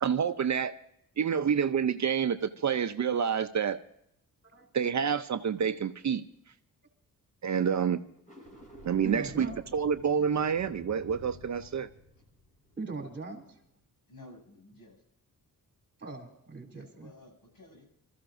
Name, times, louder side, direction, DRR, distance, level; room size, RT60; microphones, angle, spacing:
voice 1, 0.0-0.8 1.2-3.8 4.7-6.2 7.4-8.0 8.8-11.9, right 7 dB, 50° right, 10 dB, 0.6 m, -28 dB
sound 1, 8.1-13.4, left 1 dB, 20° left, 4.5 m, -51 dB
voice 2, 9.0-9.6 12.8-13.6 16.0-17.1, right 3 dB, 30° right, 1 dB, 3.7 m, -40 dB
voice 3, 14.1-15.0 16.7-17.8, left 2 dB, 65° left, 0 dB, 7.0 m, -53 dB
26.0 x 14.5 x 2.6 m, 0.75 s
cardioid pair, 80°, 37 cm